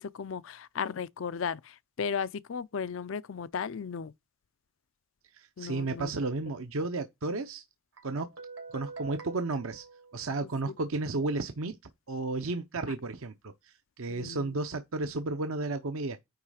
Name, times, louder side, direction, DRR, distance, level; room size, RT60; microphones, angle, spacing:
voice 1, 0.0-4.1 5.6-6.1 14.1-14.5, left 6 dB, 60° left, 0.4 m, -35 dB
voice 2, 5.3-7.6 8.0-8.3 8.7-9.8 10.1-11.8 12.1-16.2, right 3 dB, 65° right, 0.7 m, -33 dB
Guitar, 8.0-10.8, right 4 dB, 85° right, 3.1 m, -46 dB
9.3 x 3.1 x 4.9 m
head